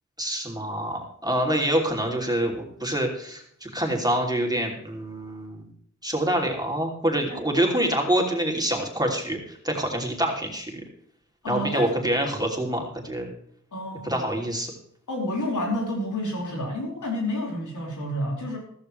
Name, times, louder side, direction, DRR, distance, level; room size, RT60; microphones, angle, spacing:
voice 1, 0.2-5.7 6.0-10.8 11.5-13.3 14.0-14.7, right 1 dB, 15° right, 1 dB, 3.0 m, -26 dB
voice 2, 11.4-11.9 13.7-14.3 15.1-18.6, left 1 dB, 85° left, -1 dB, 4.9 m, -29 dB
15.0 x 14.0 x 3.3 m, 0.68 s
wide cardioid pair, 105°, 30 cm